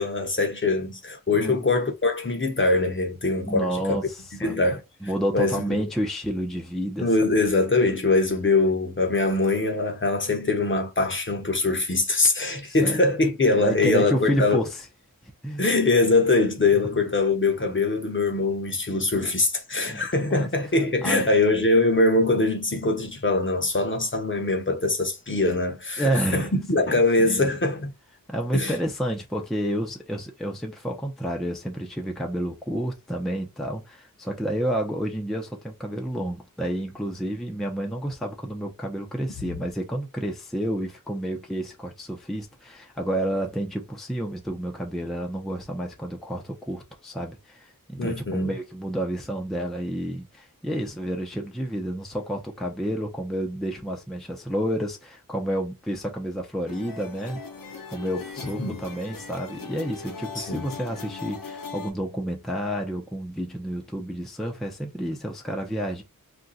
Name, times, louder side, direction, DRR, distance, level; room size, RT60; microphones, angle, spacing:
voice 1, 0.0-4.0 4.4-4.8 5.3-5.8 7.0-14.6 15.6-27.9 28.5-28.7 48.0-48.5 58.6-58.8 60.4-60.7, left 2 dB, 35° left, 0.8 m, -23 dB
voice 2, 1.3-1.7 3.4-4.6 5.0-7.1 12.6-13.0 13.6-14.9 15.4-15.6 16.7-17.0 19.9-20.5 21.0-21.2 26.0-26.5 26.8-27.5 28.3-57.4 57.9-66.0, equal, ahead, 0.6 m, -30 dB
sound 1, 56.7-61.9, left 5 dB, 70° left, 0.8 m, -39 dB
2.5 x 2.2 x 3.9 m
wide cardioid pair, 80°, 35 cm